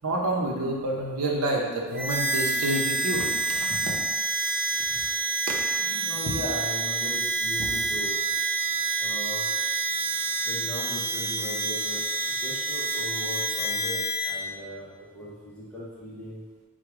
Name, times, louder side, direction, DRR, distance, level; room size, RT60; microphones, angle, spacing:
voice 1, 0.0-4.1 4.9-5.0 5.5-6.1, right 1 dB, 85° right, 0 dB, 0.8 m, -29 dB
Harmonica, 1.9-14.4, right 3 dB, 45° right, 1.4 m, -28 dB
voice 2, 6.0-8.2 9.0-9.5 10.4-16.4, equal, 5° left, -9 dB, 0.8 m, -38 dB
4.8 x 2.3 x 4.7 m, 1.4 s
head